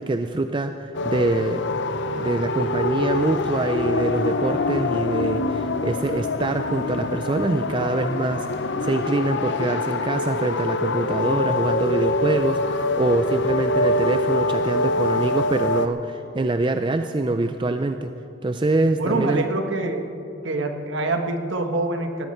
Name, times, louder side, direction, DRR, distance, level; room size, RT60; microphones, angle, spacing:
voice 1, 0.0-1.6 2.2-18.1 18.4-19.5, right 2 dB, 25° right, 8 dB, 0.4 m, -24 dB
sound 1, 0.9-15.9, left 2 dB, 55° left, 0.5 m, -24 dB
voice 2, 19.0-20.1 20.4-22.3, right 2 dB, 60° right, 5 dB, 1.3 m, -25 dB
18.5 x 14.5 x 4.4 m, 2.8 s
head